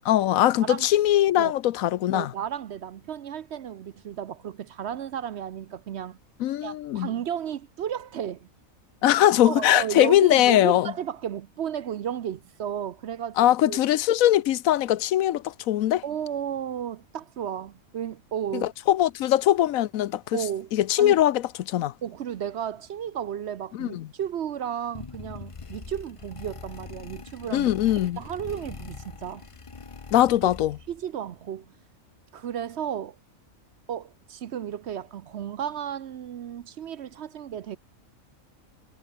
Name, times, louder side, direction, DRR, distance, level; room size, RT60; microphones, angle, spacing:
voice 1, 0.0-2.3 6.4-7.1 9.0-10.9 13.4-16.0 18.5-20.4 20.7-21.9 23.7-24.1 27.5-28.2 30.1-30.8, left 13 dB, 80° left, 1.1 m, -21 dB
voice 2, 2.1-6.2 6.6-8.5 9.4-13.8 16.0-18.7 20.3-21.2 22.0-27.7 28.2-29.5 30.9-31.7 32.3-33.2 33.9-37.8, right 9 dB, 60° right, 0.9 m, -33 dB
sound 1, 24.9-31.0, left 5 dB, 30° left, 0.7 m, -42 dB
omnidirectional pair, 1.4 m